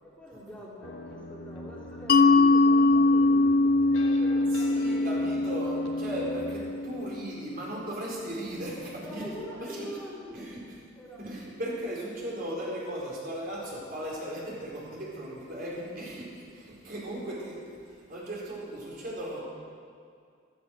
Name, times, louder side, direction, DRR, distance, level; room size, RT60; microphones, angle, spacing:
voice 1, 0.0-5.3 9.0-10.5 10.9-11.2, equal, 5° left, -6 dB, 2.8 m, -44 dB
sound 1, 0.8-6.7, left 1 dB, 75° left, 1.6 m, -43 dB
Mallet percussion, 2.1-7.5, left 2 dB, 50° left, 0.5 m, -23 dB
voice 2, 4.5-9.2 9.6-9.9 10.3-10.6 11.2-17.6 17.8-19.4, right 1 dB, 50° right, -4 dB, 4.3 m, -37 dB
14.0 x 13.0 x 6.4 m, 2.2 s
head